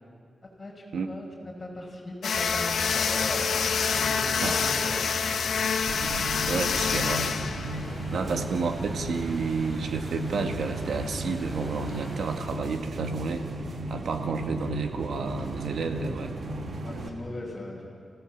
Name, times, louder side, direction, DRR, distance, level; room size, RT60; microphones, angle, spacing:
voice 1, 0.6-1.3 1.6-5.6 7.9-8.3 16.8-17.9, left 1 dB, 20° left, -4 dB, 5.5 m, -38 dB
sound 1, 2.2-8.2, left 6 dB, 90° left, 1.2 m, -27 dB
sound 2, 2.3-12.5, equal, 25° right, 5.2 m, -41 dB
sound 3, 5.9-17.1, right 1 dB, 60° right, 2.3 m, -35 dB
voice 2, 6.5-7.3 8.1-13.4 13.9-16.3, right 4 dB, 90° right, 5 dB, 1.7 m, -30 dB
28.5 x 16.0 x 7.4 m, 2.3 s
wide cardioid pair, 125°, 0 cm